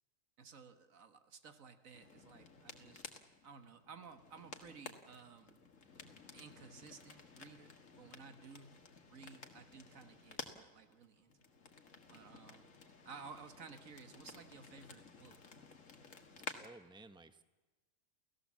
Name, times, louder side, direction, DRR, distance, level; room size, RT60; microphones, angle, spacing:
voice 1, 0.4-3.0 3.4-5.6 6.3-8.8 9.1-11.6 12.1-12.7 13.1-15.4, right 5 dB, 85° right, 9 dB, 1.8 m, -55 dB
sound 1, 1.9-16.7, left 4 dB, 70° left, 2.1 m, -54 dB
voice 2, 16.6-17.4, right 2 dB, 5° right, 10 dB, 0.9 m, -56 dB
29.0 x 16.0 x 7.4 m, 1.2 s
omnidirectional pair, 1.4 m